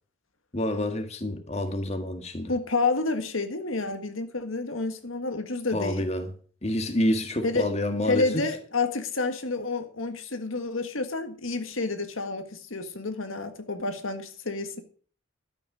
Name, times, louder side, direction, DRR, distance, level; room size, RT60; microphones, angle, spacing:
voice 1, 0.5-2.5 5.7-6.3 6.6-8.4, left 1 dB, 30° left, 1.8 m, -28 dB
voice 2, 2.5-6.0 7.4-7.7 8.1-14.8, left 3 dB, 80° left, 1.7 m, -29 dB
12.5 x 8.5 x 6.2 m
head